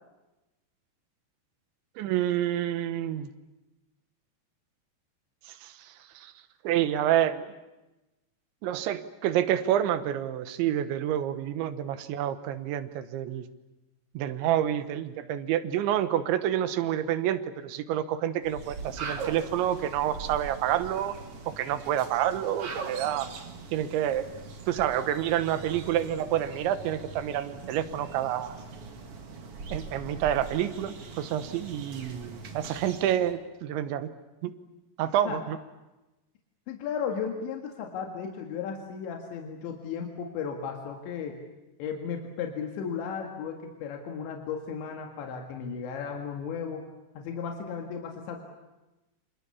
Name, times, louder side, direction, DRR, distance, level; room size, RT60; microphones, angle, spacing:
voice 1, 2.0-3.3 5.5-6.3 6.7-7.5 8.6-13.5 14.2-21.2 21.5-23.3 23.7-24.3 24.7-28.6 29.7-34.1 34.4-34.5 35.0-35.6, right 11 dB, 90° right, 11 dB, 3.6 m, -28 dB
sound 1, 18.4-33.3, right 4 dB, 45° right, 2.2 m, -41 dB
voice 2, 36.7-41.4 41.8-46.8 47.2-48.4, left 6 dB, 85° left, 2 dB, 4.2 m, -35 dB
29.0 x 26.5 x 7.1 m, 1.0 s
omnidirectional pair, 5.1 m